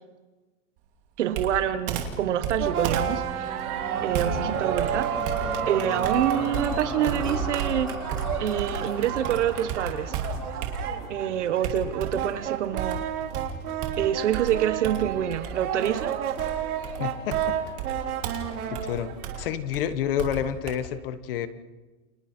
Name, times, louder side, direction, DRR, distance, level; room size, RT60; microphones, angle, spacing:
voice 1, 1.2-3.6 4.0-5.1 5.7-8.0 8.4-10.1 11.1-13.0 14.0-16.1, right 10 dB, 50° right, 10 dB, 1.4 m, -27 dB
Computer keyboard, 1.3-8.9 9.2-11.1 11.6-12.4 12.8-20.8, right 6 dB, 25° right, 2.6 m, -34 dB
sound 1, 2.1-12.4 13.0-13.1, right 2 dB, ahead, 6.6 m, -37 dB
sound 2, 2.6-19.5, right 9 dB, 75° right, 4.5 m, -31 dB
voice 2, 17.0-17.6 18.7-19.1 19.4-21.5, left 9 dB, 40° left, 12 dB, 1.4 m, -29 dB
30.0 x 27.5 x 4.5 m, 1.2 s
supercardioid pair, 180°, 45 cm